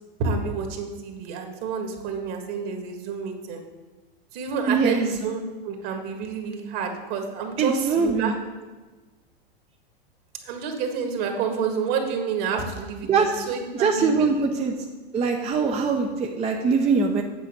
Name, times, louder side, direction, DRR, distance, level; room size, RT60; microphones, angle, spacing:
voice 1, 0.2-3.6 4.3-8.3 10.4-14.5, right 5 dB, 50° right, 4 dB, 1.8 m, -29 dB
voice 2, 4.7-5.1 7.6-8.3 13.1-13.3 13.8-14.7 15.1-17.2, right 5 dB, 20° right, 2 dB, 0.7 m, -22 dB
8.5 x 4.2 x 7.2 m, 1.3 s
hypercardioid pair, 115°, 29 cm